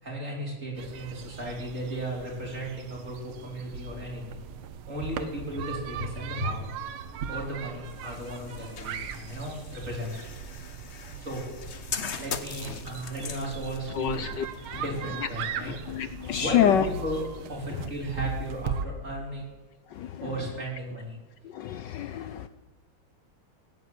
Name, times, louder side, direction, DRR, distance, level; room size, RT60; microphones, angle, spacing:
voice 1, 0.0-4.4 4.9-6.8 7.3-10.1 11.2-11.4 12.2-14.2 14.7-15.8 16.4-17.2 17.5-19.5 20.2-21.2, right 1 dB, 35° right, -2 dB, 4.8 m, -35 dB
sound 1, 0.7-18.9, right 6 dB, 90° right, 1.8 m, -39 dB
sound 2, 7.8-15.7, left 6 dB, 45° left, 0.9 m, -41 dB
voice 2, 14.0-14.4 14.7-14.8 15.7-16.8 20.0-20.1 21.5-22.5, left 9 dB, 70° left, 12 dB, 1.2 m, -27 dB
17.0 x 9.8 x 8.1 m, 1.2 s
omnidirectional pair, 2.2 m